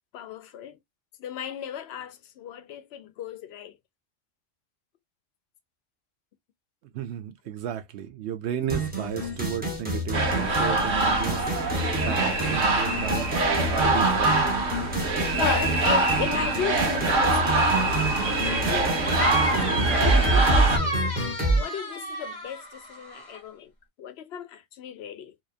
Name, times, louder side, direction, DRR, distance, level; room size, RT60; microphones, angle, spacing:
voice 1, 0.1-0.8 1.2-3.8 9.0-9.3 13.0-13.2 13.6-13.7 15.3-17.7 18.2-21.0 21.6-23.7 24.0-25.4, left 9 dB, 65° left, 0.7 m, -36 dB
voice 2, 6.9-11.4 11.7-13.3 13.7-14.4, right 10 dB, 65° right, 0.8 m, -33 dB
sound 1, 8.7-21.6, right 1 dB, 10° right, 0.7 m, -28 dB
sound 2, 10.1-20.8, right 2 dB, 90° right, 1.1 m, -24 dB
sound 3, 19.0-23.4, right 1 dB, 30° left, 1.0 m, -32 dB
2.7 x 2.2 x 2.3 m
omnidirectional pair, 1.3 m